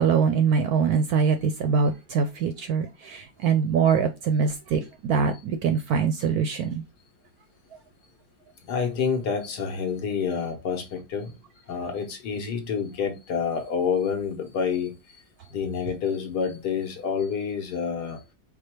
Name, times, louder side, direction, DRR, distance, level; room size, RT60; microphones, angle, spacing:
voice 1, 0.0-6.8, right 6 dB, 70° right, 0.9 m, -23 dB
voice 2, 8.7-11.4 11.7-14.9 15.5-18.2, left 6 dB, 65° left, 1.5 m, -28 dB
4.9 x 2.3 x 4.4 m
omnidirectional pair, 2.0 m